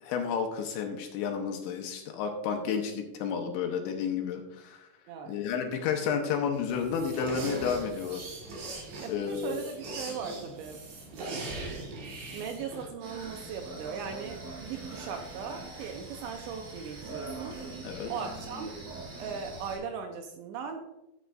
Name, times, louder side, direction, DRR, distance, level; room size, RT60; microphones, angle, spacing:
voice 1, 0.0-4.9 5.3-8.3 9.1-9.6 17.8-18.1, left 6 dB, 75° left, 3 dB, 3.0 m, -31 dB
sound 1, 6.5-12.9, right 2 dB, 60° right, 4.6 m, -40 dB
voice 2, 9.0-10.8 11.2-11.8 12.3-17.6 18.1-18.7 19.2-20.8, right 6 dB, 85° right, 4 dB, 2.8 m, -39 dB
sound 2, 13.0-19.8, right 3 dB, 45° right, 3.8 m, -42 dB
14.5 x 8.0 x 2.5 m, 0.91 s
omnidirectional pair, 5.8 m